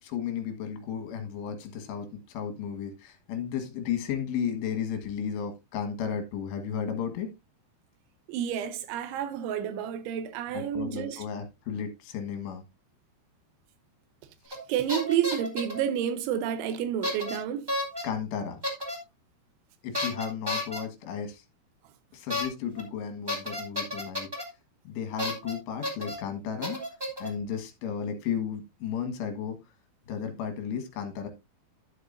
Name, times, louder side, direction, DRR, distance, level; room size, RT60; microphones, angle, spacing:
voice 1, 0.0-7.3 10.5-12.6 18.0-18.6 19.8-21.4 22.1-24.3 24.9-26.8 27.2-29.6 30.1-31.3, left 7 dB, 70° left, 3.6 m, -34 dB
voice 2, 8.3-11.2 14.5-17.7, right 9 dB, 85° right, 3.4 m, -30 dB
sound 1, 14.5-14.6 14.9-15.8 17.0-17.4 17.7-18.0 18.6-19.0 19.9-20.8 22.3-22.5 22.8-22.9 23.3-24.4 25.2-25.5 25.8-26.1 26.6-27.3, left 1 dB, 10° right, 1.0 m, -31 dB
11.5 x 7.9 x 2.6 m
omnidirectional pair, 5.2 m